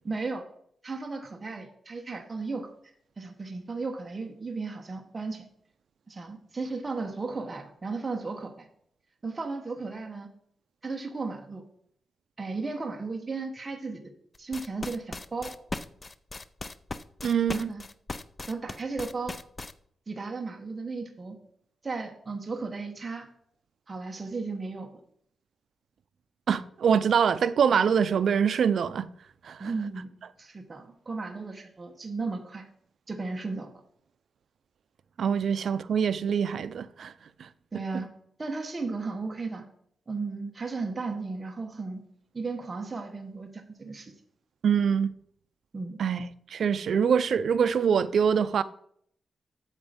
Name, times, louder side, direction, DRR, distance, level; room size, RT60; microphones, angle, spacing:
voice 1, 0.0-0.4 0.8-2.7 3.2-5.4 6.1-8.7 9.2-10.3 10.8-11.6 12.4-14.1 14.4-15.5 17.5-17.8 18.5-19.4 20.1-21.4 21.8-23.3 23.9-25.0 29.6-32.6 33.1-33.8 37.7-38.1 38.4-39.6 40.1-42.0 42.3-44.1 45.7-46.0, right 3 dB, 25° right, 1.0 m, -35 dB
sound 1, 14.3-19.7, left 3 dB, 25° left, 0.4 m, -37 dB
voice 2, 17.2-17.7 26.5-29.1 29.4-29.7 35.2-37.1 37.4-37.5 44.6-45.1 46.0-48.6, right 7 dB, 60° right, 0.5 m, -24 dB
8.1 x 7.1 x 5.1 m
wide cardioid pair, 150°, 0 cm